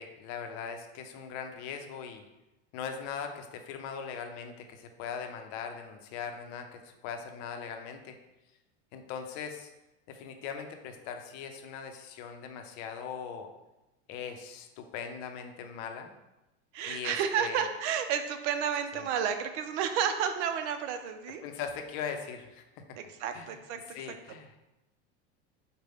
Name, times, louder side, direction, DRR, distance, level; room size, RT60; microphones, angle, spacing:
voice 1, 0.0-2.2 2.7-8.2 8.9-9.7 10.1-13.5 14.1-16.1 16.9-17.7 18.9-19.0 21.4-22.6 22.9-23.0 23.3-23.5 23.9-24.6, left 7 dB, 60° left, 5 dB, 0.6 m, -40 dB
voice 2, 16.7-21.4 23.0-23.8, right 8 dB, 75° right, 8 dB, 0.6 m, -31 dB
5.0 x 2.2 x 3.4 m, 1.0 s
supercardioid pair, 120°, 35 cm